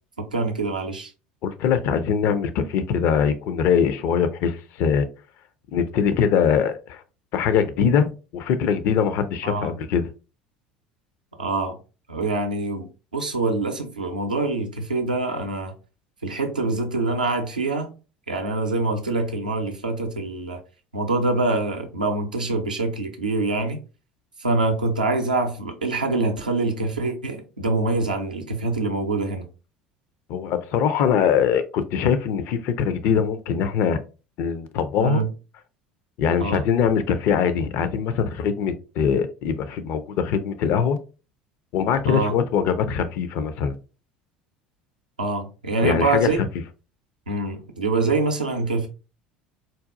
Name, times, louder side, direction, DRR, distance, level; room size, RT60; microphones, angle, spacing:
voice 1, 0.2-1.1 9.4-9.7 11.4-11.8 12.1-15.7 16.2-17.9 18.3-20.6 20.9-23.8 24.4-29.5 35.0-35.3 36.4-36.6 42.1-42.3 45.2-46.4 47.3-48.9, right 3 dB, 85° right, 0.5 m, -25 dB
voice 2, 1.4-5.1 5.7-7.0 7.3-10.1 30.3-34.0 34.4-35.2 36.2-41.0 41.7-43.7 45.8-46.3, left 7 dB, 50° left, 0.4 m, -22 dB
3.9 x 2.2 x 2.4 m
figure-of-eight pair, 65°, 4 cm